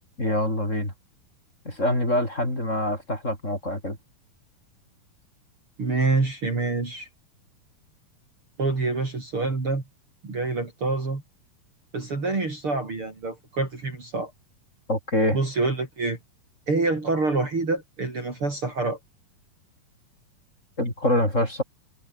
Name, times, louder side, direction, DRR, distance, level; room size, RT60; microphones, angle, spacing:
voice 1, 0.2-0.9 1.6-4.0 14.9-15.4 20.8-21.6, left 1 dB, 20° left, 7.9 m, -25 dB
voice 2, 5.8-7.1 8.6-9.8 10.2-11.2 11.9-14.3 15.3-16.2 16.7-19.0, right 3 dB, 35° right, 5.3 m, -26 dB
omnidirectional pair, 4.2 m